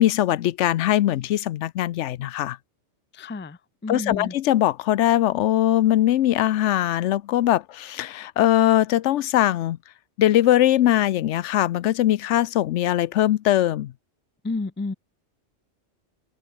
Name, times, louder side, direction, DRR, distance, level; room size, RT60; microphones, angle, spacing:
voice 1, 0.0-2.6 3.9-9.8 10.2-13.9, left 13 dB, 85° left, 0.9 m, -21 dB
voice 2, 3.1-4.3 14.4-14.9, left 3 dB, 15° left, 0.3 m, -31 dB
open air
omnidirectional pair, 1.2 m